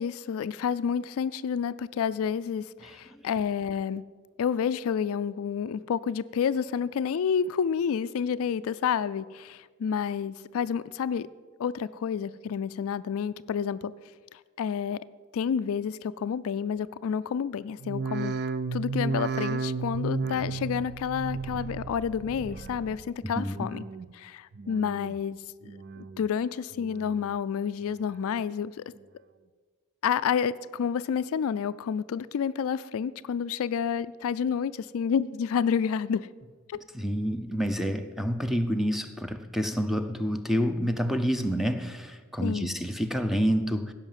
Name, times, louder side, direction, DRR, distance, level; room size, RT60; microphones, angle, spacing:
voice 1, 0.0-4.0 4.4-11.3 11.6-13.9 14.6-15.0 15.3-18.3 18.7-23.8 24.1-25.4 26.2-28.8 30.0-36.3 36.7-36.8 42.4-42.8, left 7 dB, 65° left, 0.3 m, -29 dB
voice 2, 2.8-3.3 23.2-23.7 36.9-43.9, equal, ahead, 0.6 m, -28 dB
sound 1, 17.8-23.1 23.4-24.1 24.5-25.2 25.6-26.3 26.7-27.4 27.8-28.4 29.0-29.1, right 4 dB, 50° right, 0.5 m, -34 dB
16.0 x 5.7 x 7.4 m
head